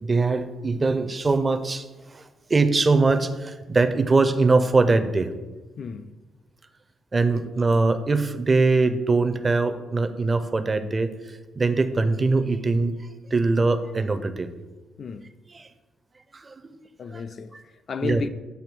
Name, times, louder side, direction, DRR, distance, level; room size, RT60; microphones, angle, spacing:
voice 1, 0.0-5.3 7.1-13.0 13.3-14.5 15.5-15.7 16.3-16.8 17.1-17.2 17.5-17.6 18.0-18.2, right 3 dB, 30° right, 0.5 m, -22 dB
voice 2, 5.8-6.1 15.0-15.3 17.0-18.3, left 5 dB, 50° left, 0.3 m, -33 dB
7.7 x 2.6 x 5.2 m
cardioid pair, 90°, 0 cm